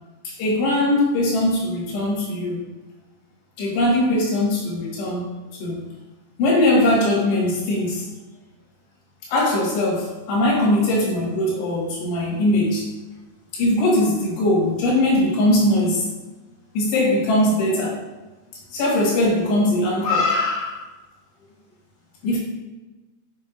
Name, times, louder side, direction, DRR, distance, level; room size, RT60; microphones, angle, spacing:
voice 1, 0.4-2.7 3.6-5.3 5.6-5.9 6.4-8.1 9.2-12.9 13.5-16.1 16.7-18.0 18.7-20.9 22.2-22.4, left 1 dB, 85° left, -4 dB, 3.9 m, -20 dB
8.4 x 5.3 x 2.6 m, 1.1 s
omnidirectional pair, 4.7 m